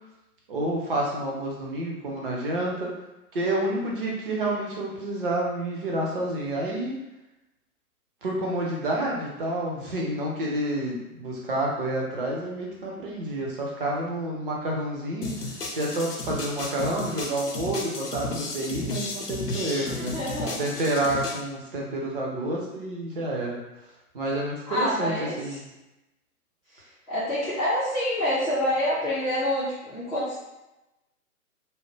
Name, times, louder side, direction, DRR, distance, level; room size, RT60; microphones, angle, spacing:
voice 1, 0.5-2.9 3.3-7.0 8.2-15.3 15.7-20.1 20.6-23.6 24.1-25.6, right 1 dB, 35° right, -2 dB, 0.7 m, -29 dB
sound 1, 15.2-21.4, left 2 dB, 90° left, 0.6 m, -33 dB
voice 2, 19.9-20.6 24.7-25.6 26.7-30.3, left 1 dB, ahead, -18 dB, 0.5 m, -27 dB
2.7 x 2.0 x 3.2 m, 0.98 s
figure-of-eight pair, 125°, 45 cm